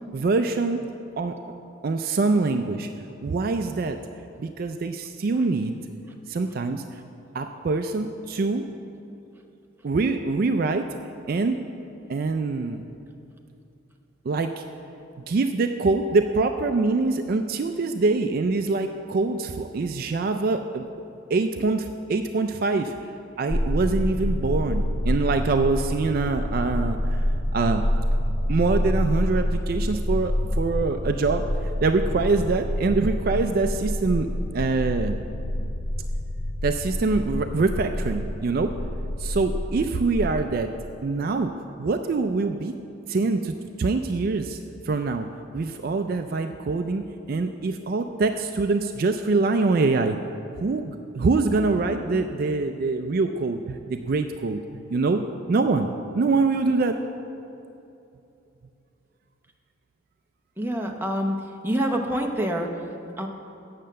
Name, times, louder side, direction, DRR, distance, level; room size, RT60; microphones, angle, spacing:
voice 1, 0.1-0.8 1.2-1.4 1.8-2.9 3.2-4.0 4.4-5.8 6.3-7.0 7.3-8.7 9.8-10.9 11.3-11.6 12.1-12.9 14.2-14.6 15.3-20.9 21.3-22.9 23.4-27.2 27.5-27.8 28.5-34.3 34.5-35.2 36.6-38.7 39.2-40.7 41.0-41.5 41.8-42.7 43.1-44.6 44.9-45.3 45.5-50.2 50.5-54.6 54.9-57.0, right 3 dB, 50° right, 7 dB, 0.4 m, -24 dB
sound 1, 23.5-40.4, left 1 dB, 45° left, 0.6 m, -27 dB
voice 2, 60.6-61.3 61.6-62.7 63.2-63.3, equal, 10° right, 1 dB, 0.7 m, -26 dB
8.8 x 6.6 x 7.4 m, 2.7 s
head